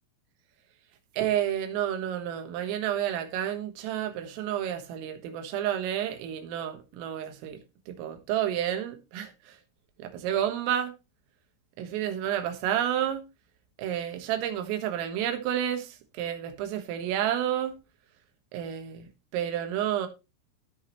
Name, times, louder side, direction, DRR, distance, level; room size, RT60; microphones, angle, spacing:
voice 1, 1.1-7.6 7.9-9.6 10.0-10.9 11.8-13.2 13.8-17.8 18.5-20.1, right 10 dB, 80° right, 4.1 m, -30 dB
16.0 x 6.2 x 3.1 m
omnidirectional pair, 5.8 m